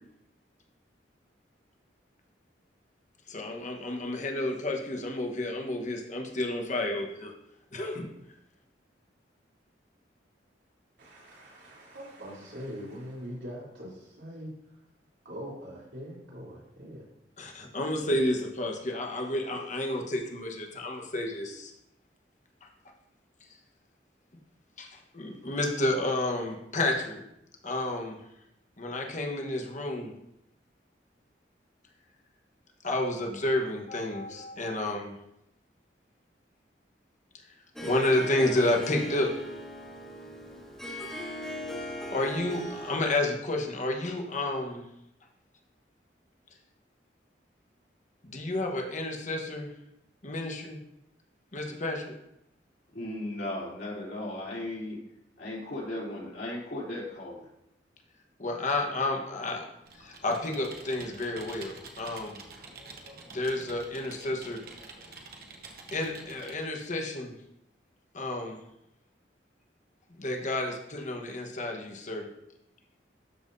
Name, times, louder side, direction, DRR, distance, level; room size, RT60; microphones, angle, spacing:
voice 1, 3.3-7.3 7.7-8.1 17.4-21.7 22.6-22.7 24.8-27.2 27.6-28.2 28.8-30.2 32.8-35.2 37.8-39.3 42.1-44.8 48.2-49.7 50.2-50.8 51.5-52.1 58.4-59.6 60.0-62.4 63.3-64.6 65.9-67.3 68.1-68.6 70.2-72.3, left 1 dB, 45° left, 2 dB, 1.2 m, -30 dB
voice 2, 11.0-14.5 15.2-17.0, equal, 75° right, -5 dB, 3.2 m, -42 dB
Harp, 37.8-43.2, equal, 5° left, 1.7 m, -39 dB
voice 3, 52.9-55.0 55.4-57.5, left 1 dB, 60° left, -6 dB, 3.3 m, -36 dB
Computer keyboard, 59.8-66.7, right 3 dB, 55° right, 1.1 m, -48 dB
13.0 x 5.8 x 2.7 m, 0.82 s
head